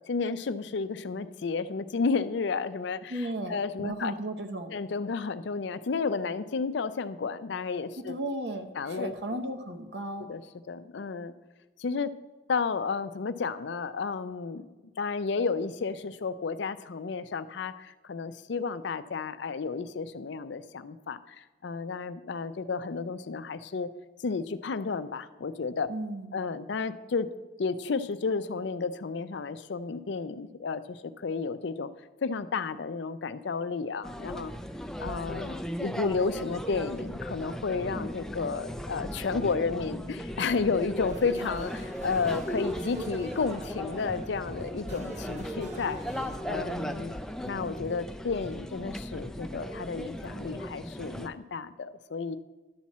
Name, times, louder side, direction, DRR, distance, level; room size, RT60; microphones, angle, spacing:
voice 1, 0.1-4.1 4.7-8.2 8.8-9.1 10.2-10.4 10.7-11.3 11.8-12.1 12.5-14.7 15.0-23.9 24.2-25.9 26.3-27.3 27.6-31.9 32.2-34.5 35.0-46.0 46.5-47.2 47.5-52.4, left 4 dB, 65° left, 13 dB, 0.4 m, -32 dB
voice 2, 3.1-4.7 8.0-10.3 25.9-26.4, right 1 dB, 60° right, 5 dB, 0.9 m, -35 dB
sound 1, 34.0-51.3, equal, 5° left, 0.3 m, -37 dB
sound 2, 41.1-46.4, equal, 35° right, 1.1 m, -45 dB
11.5 x 4.2 x 7.2 m, 1.2 s
head